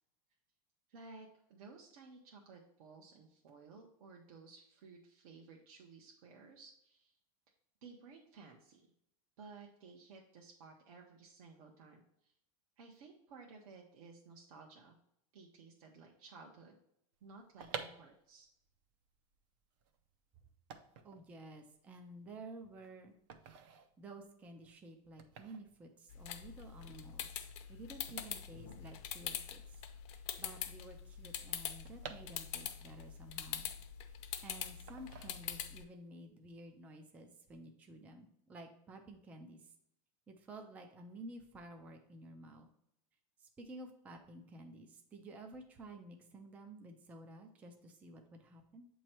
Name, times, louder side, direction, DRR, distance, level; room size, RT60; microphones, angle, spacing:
voice 1, 0.9-7.2 7.8-8.9 9.4-12.3 12.8-15.0 15.3-16.8 17.2-18.5, right 4 dB, 65° right, 0 dB, 1.0 m, -56 dB
sound 1, 17.3-29.5 29.7-29.8 30.0-32.9 33.3-34.3 34.9-35.9 36.2-36.5, right 6 dB, 45° right, 0.6 m, -52 dB
voice 2, 21.0-23.2 24.0-29.8 30.1-33.7 34.1-34.2 34.4-39.7 40.3-42.7 43.4-48.9, right 2 dB, 5° right, 4 dB, 0.3 m, -52 dB
sound 2, 26.1-35.8, left 9 dB, 50° left, 0.6 m, -44 dB
7.8 x 3.1 x 4.3 m, 0.76 s
supercardioid pair, 170°, 20 cm